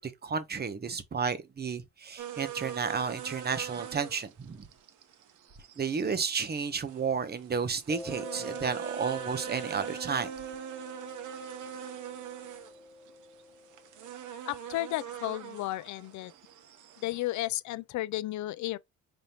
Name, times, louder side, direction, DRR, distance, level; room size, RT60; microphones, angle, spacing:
voice 1, 0.0-4.7 5.8-10.3, right 5 dB, 35° right, 0.9 m, -32 dB
sound 1, 2.2-17.4, right 10 dB, 75° right, 1.0 m, -42 dB
Mallet percussion, 7.9-14.3, left 2 dB, 5° left, 0.6 m, -46 dB
voice 2, 14.5-16.3 17.0-18.8, left 16 dB, 70° left, 0.5 m, -33 dB
5.3 x 2.8 x 2.9 m
cardioid pair, 90°, 30 cm